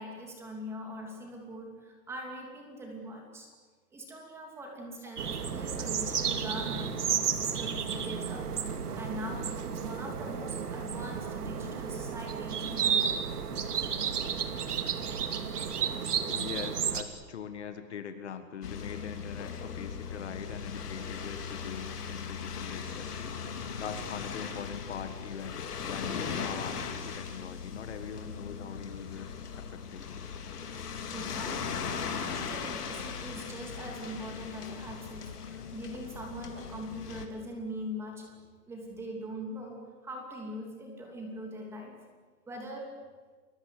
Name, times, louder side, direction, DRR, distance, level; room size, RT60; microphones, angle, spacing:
voice 1, 0.0-3.5 3.9-8.7 8.9-13.3 31.1-31.9 32.2-38.3 38.7-41.9 42.5-42.9, equal, 5° right, 1 dB, 2.8 m, -42 dB
sound 1, 5.2-17.0, right 7 dB, 65° right, 2.7 m, -32 dB
voice 2, 16.3-23.4 23.8-29.3 29.5-30.3, left 7 dB, 40° left, 9 dB, 1.6 m, -42 dB
sound 2, 18.6-37.3, left 6 dB, 65° left, 3.8 m, -38 dB
29.0 x 21.5 x 8.4 m, 1.5 s
hypercardioid pair, 175°, 50 cm